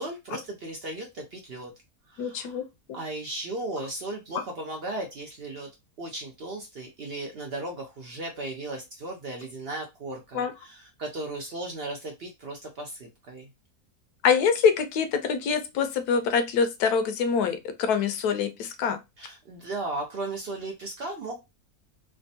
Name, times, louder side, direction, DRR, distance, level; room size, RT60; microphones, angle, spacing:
voice 1, 0.0-1.7 2.1-2.6 2.9-5.7 6.0-13.5 19.2-21.4, right 2 dB, 60° right, 0.6 m, -36 dB
voice 2, 2.2-2.6 10.3-10.5 14.2-19.0, left 6 dB, 90° left, 1.1 m, -25 dB
3.4 x 2.1 x 2.6 m
omnidirectional pair, 1.6 m